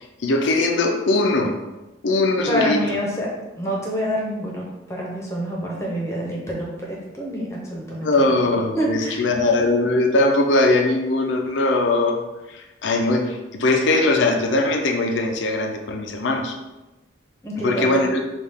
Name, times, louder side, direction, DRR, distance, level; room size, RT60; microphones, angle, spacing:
voice 1, 0.2-1.5 2.0-2.8 8.0-12.2 12.5-16.5 17.6-18.2, left 2 dB, 85° left, 3 dB, 0.5 m, -20 dB
voice 2, 2.5-8.5 8.8-9.3 17.4-18.0, equal, 15° left, -3 dB, 0.8 m, -27 dB
5.5 x 2.4 x 3.5 m, 1.1 s
head